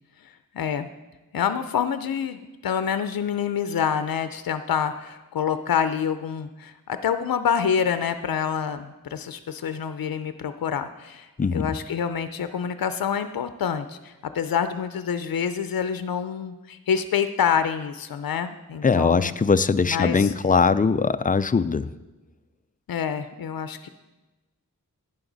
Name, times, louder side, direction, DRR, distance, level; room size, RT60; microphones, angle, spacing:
voice 1, 0.2-0.9 1.3-19.3 19.8-20.3 22.9-23.9, left 7 dB, 80° left, 10 dB, 0.5 m, -27 dB
voice 2, 18.8-21.9, left 5 dB, 25° left, 14 dB, 0.4 m, -21 dB
11.0 x 9.8 x 4.0 m, 1.1 s
wide cardioid pair, 90°, 34 cm